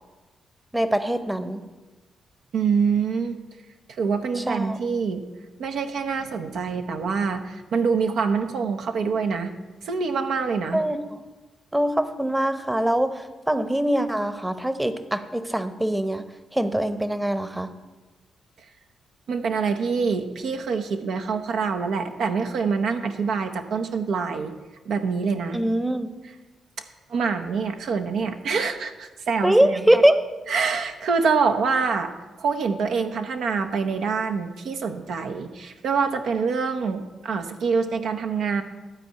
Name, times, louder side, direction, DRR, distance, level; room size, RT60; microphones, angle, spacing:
voice 1, 0.7-1.6 4.5-4.8 10.7-11.2 11.7-16.2 16.5-17.7 25.5-26.1 29.4-30.2, right 1 dB, 10° right, 11 dB, 0.9 m, -23 dB
voice 2, 2.5-3.4 3.9-5.2 5.6-9.5 9.8-10.8 19.3-24.5 24.9-25.6 27.1-29.9 30.5-32.1 32.4-38.6, right 5 dB, 70° right, 5 dB, 0.7 m, -25 dB
12.0 x 4.5 x 8.3 m, 1.2 s
supercardioid pair, 50°, 0 cm